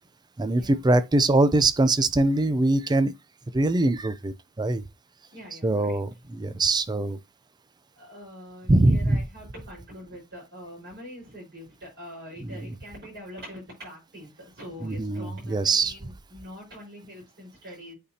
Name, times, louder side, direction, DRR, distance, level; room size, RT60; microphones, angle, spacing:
voice 1, 0.4-3.1 3.5-4.8 5.6-7.2 8.7-9.2 12.4-12.7 14.8-15.9, right 2 dB, 20° right, 0.4 m, -23 dB
voice 2, 5.3-6.0 8.0-18.0, equal, 50° right, 4.7 m, -44 dB
8.4 x 4.1 x 2.8 m
head